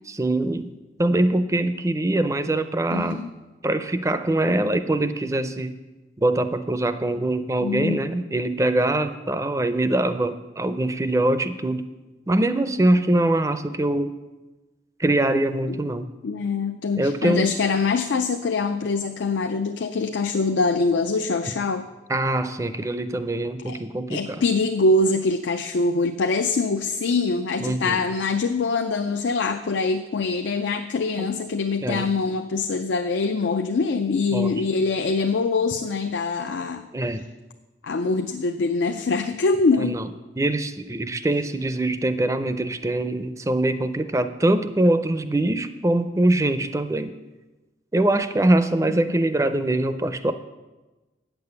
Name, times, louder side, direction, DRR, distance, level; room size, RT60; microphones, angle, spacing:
voice 1, 0.1-0.7 1.0-3.2 3.6-5.7 6.2-11.9 12.3-14.2 15.0-16.1 17.0-17.5 22.1-24.4 27.6-28.0 31.8-32.1 34.3-34.6 36.9-37.2 39.8-40.1 40.4-47.1 47.9-50.3, right 1 dB, 15° right, 11 dB, 0.4 m, -23 dB
voice 2, 2.9-3.3 7.6-8.0 15.7-15.8 16.2-21.9 23.7-23.8 24.1-36.8 37.8-40.0 48.8-49.0, left 3 dB, 85° left, 7 dB, 0.4 m, -24 dB
8.8 x 6.9 x 6.8 m, 1.1 s
head